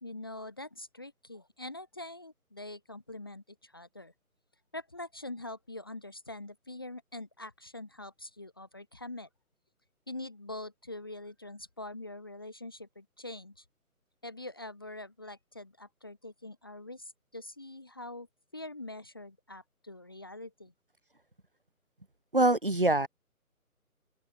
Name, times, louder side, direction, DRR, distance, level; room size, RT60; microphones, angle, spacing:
voice 1, 0.0-4.1 4.7-9.3 10.1-13.6 14.2-18.3 18.5-20.7, left 2 dB, 15° left, 1.5 m, -44 dB
voice 2, 22.3-23.1, right 2 dB, 40° right, 0.6 m, -24 dB
open air
hypercardioid pair, 180°, 44 cm